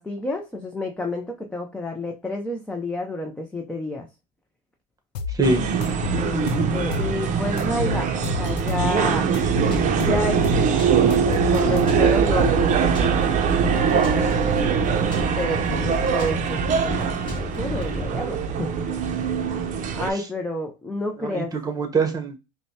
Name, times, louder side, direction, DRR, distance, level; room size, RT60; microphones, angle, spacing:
voice 1, 0.0-4.1 6.1-9.3 10.0-14.3 15.4-18.7 19.2-19.4 19.9-21.5, left 1 dB, 5° left, 3 dB, 0.5 m, -30 dB
sound 1, 5.1-5.4 5.8-7.2 7.6-8.9 9.3-10.7 11.1-12.3, left 6 dB, 90° left, 0.6 m, -30 dB
voice 2, 5.3-5.7 20.1-20.2 21.2-22.4, right 3 dB, 15° right, 5 dB, 1.1 m, -24 dB
sound 2, 5.4-20.1, right 7 dB, 35° right, 0.6 m, -22 dB
sound 3, 9.4-18.1, left 3 dB, 20° left, 1.8 m, -33 dB
5.0 x 2.2 x 2.8 m, 0.26 s
supercardioid pair, 125°, 21 cm